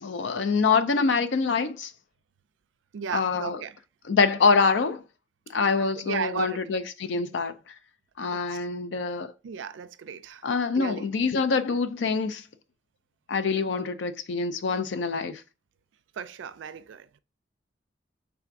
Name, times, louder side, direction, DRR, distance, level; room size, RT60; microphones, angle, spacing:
voice 1, 0.0-1.9 3.1-3.6 4.1-5.0 5.5-7.5 8.2-9.3 10.4-12.4 13.3-15.4, left 4 dB, 75° left, 0.5 m, -25 dB
voice 2, 2.9-3.8 5.8-6.6 8.3-8.6 9.4-10.5 10.8-11.0 16.2-17.2, right 7 dB, 80° right, 0.4 m, -35 dB
3.5 x 2.5 x 4.5 m
head